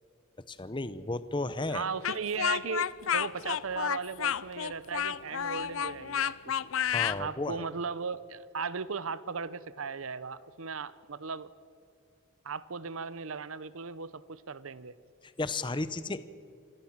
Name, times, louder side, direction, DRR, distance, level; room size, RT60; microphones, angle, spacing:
voice 1, 0.5-1.9 6.9-7.6 15.4-16.2, left 2 dB, 25° left, 14 dB, 0.7 m, -33 dB
voice 2, 1.7-6.5 7.2-11.5 12.4-14.9, right 5 dB, 75° right, 17 dB, 0.8 m, -37 dB
Speech, 2.0-7.2, left 9 dB, 75° left, 0.5 m, -30 dB
26.5 x 15.5 x 7.4 m, 2.4 s
head